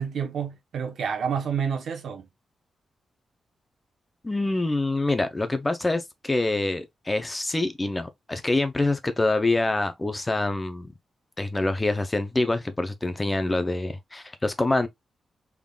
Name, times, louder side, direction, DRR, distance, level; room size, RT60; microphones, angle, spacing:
voice 1, 0.0-2.3, right 7 dB, 70° right, 0.9 m, -29 dB
voice 2, 4.2-10.9 11.4-14.9, left 2 dB, 15° left, 0.5 m, -26 dB
3.6 x 3.5 x 2.3 m
wide cardioid pair, 175°, 0 cm